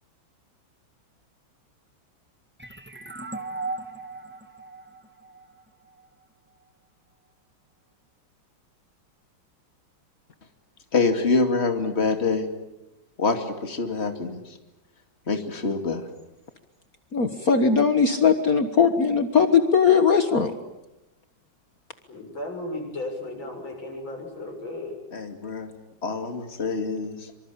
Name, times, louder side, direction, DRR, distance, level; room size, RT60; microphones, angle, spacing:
sound 1, 2.6-6.0, right 3 dB, 5° right, 1.4 m, -37 dB
voice 1, 10.9-12.5 13.2-14.6 15.3-16.1 25.1-25.7 26.0-27.3, left 4 dB, 35° left, 6 dB, 2.7 m, -25 dB
voice 2, 17.1-20.5, left 6 dB, 50° left, 8 dB, 1.8 m, -19 dB
voice 3, 22.1-25.0, left 2 dB, 90° left, 2 dB, 7.8 m, -35 dB
25.5 x 25.5 x 8.6 m, 0.95 s
omnidirectional pair, 2.1 m